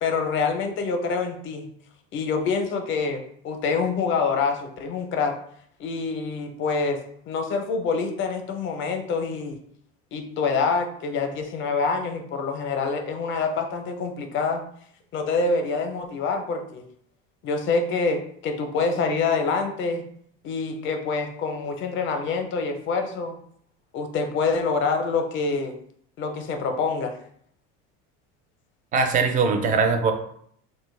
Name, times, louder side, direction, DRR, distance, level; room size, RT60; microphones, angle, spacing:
voice 1, 0.0-1.7 2.1-5.4 5.8-7.0 7.3-9.6 10.1-14.6 15.1-16.8 17.4-20.0 20.4-23.4 23.9-25.7 26.2-27.2, left 4 dB, 40° left, 5 dB, 0.5 m, -26 dB
voice 2, 28.9-30.1, right 4 dB, 25° right, 6 dB, 0.4 m, -21 dB
2.8 x 2.2 x 3.1 m, 0.65 s
cardioid pair, 130°, 31 cm